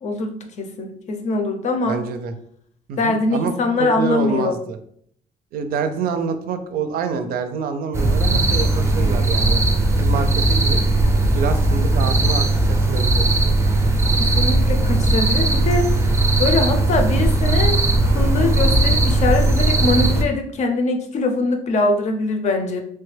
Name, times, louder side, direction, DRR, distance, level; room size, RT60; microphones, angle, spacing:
voice 1, 0.0-2.0 3.0-4.6 14.2-15.9 16.4-17.8 18.1-22.8, left 3 dB, 50° left, 4 dB, 0.5 m, -22 dB
voice 2, 1.9-2.3 2.9-4.8 5.5-9.6 10.0-10.8 11.4-13.3, right 5 dB, 85° right, 8 dB, 0.4 m, -26 dB
sound 1, 7.9-20.2, right 2 dB, 20° right, 0.4 m, -18 dB
3.2 x 2.2 x 3.2 m, 0.66 s
cardioid pair, 140°, 15 cm